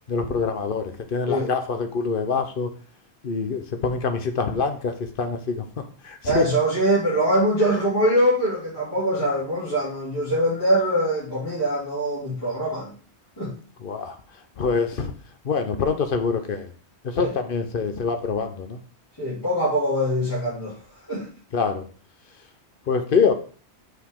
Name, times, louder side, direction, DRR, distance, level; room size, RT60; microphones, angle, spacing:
voice 1, 0.1-2.7 3.2-5.6 6.0-6.5 13.8-14.1 14.6-15.1 15.4-16.7 17.1-18.8 21.5-21.8 22.9-23.3, left 5 dB, 55° left, 7 dB, 1.0 m, -25 dB
voice 2, 6.2-12.9 13.4-13.5 17.2-17.3 19.2-20.7 21.1-21.3, equal, 20° left, -10 dB, 2.8 m, -23 dB
6.2 x 5.0 x 3.6 m, 0.40 s
omnidirectional pair, 1.2 m